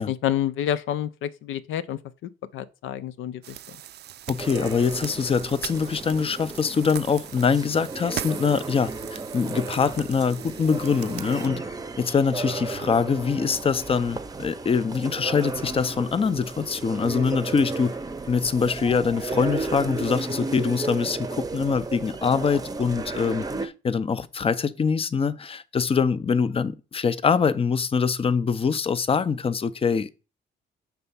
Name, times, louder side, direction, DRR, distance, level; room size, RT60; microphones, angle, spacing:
voice 1, 0.0-2.0 2.5-3.6, left 11 dB, 80° left, 0.6 m, -28 dB
sound 1, 3.4-11.5, right 12 dB, 55° right, 0.4 m, -40 dB
voice 2, 4.3-11.6 12.0-17.9 18.3-30.1, left 5 dB, 30° left, 0.5 m, -24 dB
sound 2, 4.4-23.7, right 3 dB, 20° right, 0.7 m, -34 dB
6.8 x 3.4 x 5.5 m
cardioid pair, 90°, 20 cm